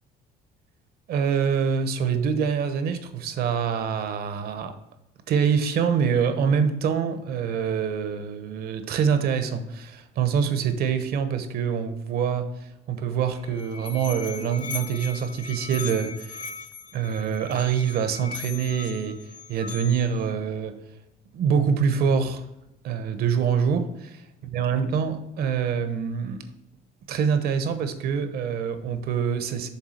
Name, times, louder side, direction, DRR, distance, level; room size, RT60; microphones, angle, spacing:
voice 1, 1.1-4.8 5.3-16.5 16.9-20.8 21.3-22.5 22.8-24.1 24.5-26.4 27.1-29.7, right 7 dB, 65° right, 0.9 m, -25 dB
Musical instrument, 13.3-20.2, left 5 dB, 50° left, 0.7 m, -39 dB
7.1 x 3.7 x 6.4 m
cardioid pair, 120°, 17 cm